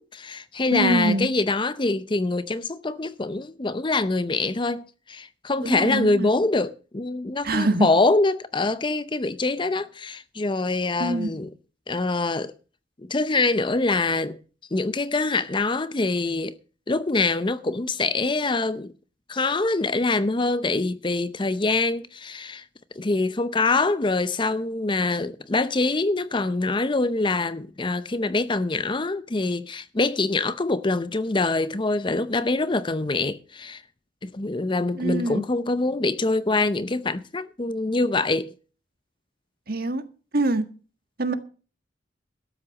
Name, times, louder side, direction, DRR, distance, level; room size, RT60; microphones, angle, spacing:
voice 1, 0.0-11.5 11.9-12.5 13.0-14.4 14.7-16.6 16.9-18.9 19.3-22.6 23.0-33.8 34.2-38.5, left 3 dB, 25° left, 0.6 m, -24 dB
voice 2, 0.7-1.3 5.6-6.3 7.4-7.9 11.0-11.3 34.9-35.4 39.7-40.0 40.3-40.6 41.2-41.3, right 2 dB, 50° right, 1.7 m, -24 dB
13.0 x 9.0 x 6.3 m
head